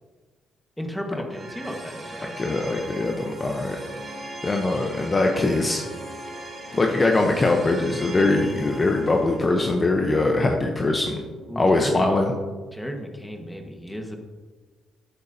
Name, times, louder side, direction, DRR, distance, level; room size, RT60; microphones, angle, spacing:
voice 1, 0.8-2.4 11.5-12.0 12.7-14.2, equal, 5° left, 3 dB, 1.5 m, -34 dB
sound 1, 1.3-12.4, right 2 dB, 35° right, 2.0 m, -39 dB
voice 2, 2.2-3.8 4.4-5.8 6.7-11.2 11.6-12.3, left 2 dB, 30° left, 2 dB, 0.9 m, -22 dB
12.0 x 9.0 x 2.8 m, 1.4 s
cardioid pair, 90°, 0 cm